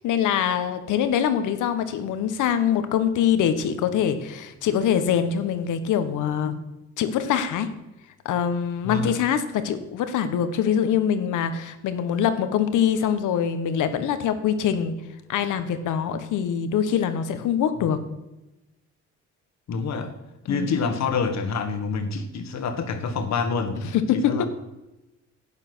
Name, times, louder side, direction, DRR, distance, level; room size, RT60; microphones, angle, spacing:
voice 1, 0.0-6.6 7.0-7.7 8.2-14.9 15.3-18.0 20.5-20.8 23.9-24.5, left 8 dB, 85° left, 11 dB, 1.3 m, -24 dB
voice 2, 8.8-9.1 19.7-20.1 20.5-23.8 24.1-24.5, left 4 dB, 65° left, 8 dB, 1.7 m, -27 dB
11.5 x 8.9 x 6.2 m, 0.97 s
cardioid pair, 90°, 30 cm